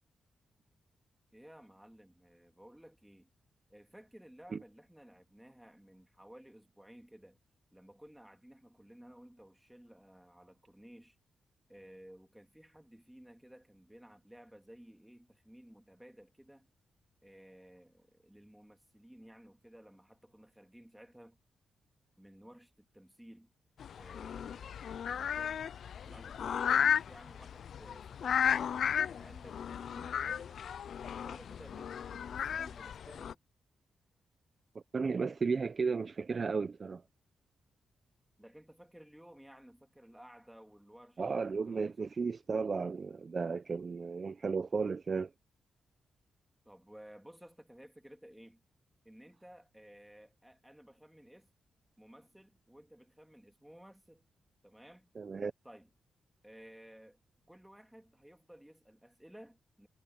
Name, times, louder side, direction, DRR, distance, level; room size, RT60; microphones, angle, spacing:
voice 1, 1.3-3.3 3.7-7.4 7.7-11.2 11.7-16.7 17.2-21.4 22.1-23.5 24.0-25.7 26.0-28.6 29.0-30.6 31.1-33.4 38.4-42.1 46.7-48.6 49.0-51.5 52.0-54.2 54.6-55.1 55.6-55.9 56.4-57.2 57.5-59.9, equal, 5° right, 2.1 m, -56 dB
sound 1, 23.8-33.3, left 8 dB, 65° left, 0.3 m, -34 dB
voice 2, 34.7-37.0 41.2-45.3 55.2-55.5, right 5 dB, 40° right, 0.6 m, -34 dB
cardioid pair, 115°, 0 cm